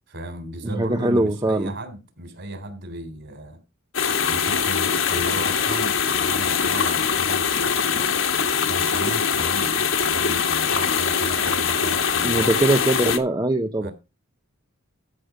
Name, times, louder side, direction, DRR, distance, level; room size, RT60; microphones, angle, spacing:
voice 1, 0.1-3.6 4.3-8.1 8.7-12.6 13.8-13.9, right 1 dB, 55° right, 3.6 m, -35 dB
voice 2, 0.6-1.7 12.2-13.9, right 1 dB, 20° right, 0.6 m, -21 dB
sound 1, 3.9-13.2, left 6 dB, 60° left, 1.6 m, -22 dB
13.5 x 6.6 x 5.0 m
head